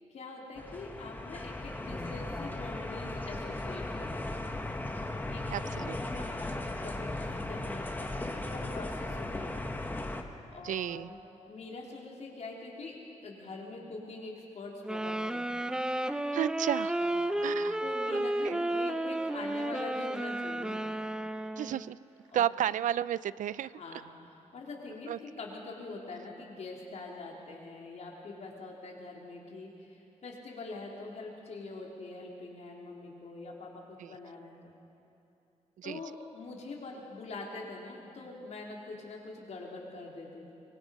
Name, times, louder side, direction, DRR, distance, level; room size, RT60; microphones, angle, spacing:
voice 1, 0.1-4.4 5.3-5.5 6.1-9.7 10.5-11.2 11.5-12.9 13.2-15.4 17.0-17.5 17.8-20.8 22.3-22.4 23.7-24.1 24.5-34.7 35.8-40.5, left 3 dB, 60° left, -1 dB, 3.7 m, -44 dB
sound 1, 0.6-10.2, left 2 dB, 15° left, 1.3 m, -37 dB
voice 2, 5.5-6.2 10.6-11.1 16.3-17.0 17.4-17.8 18.1-18.6 21.6-22.0 22.3-23.7 25.1-25.2 34.0-34.2 35.8-36.0, right 11 dB, 90° right, 18 dB, 0.4 m, -33 dB
sound 2, 14.8-21.9, right 1 dB, 5° right, 0.6 m, -32 dB
24.5 x 23.0 x 5.4 m, 2.9 s
wide cardioid pair, 145°, 13 cm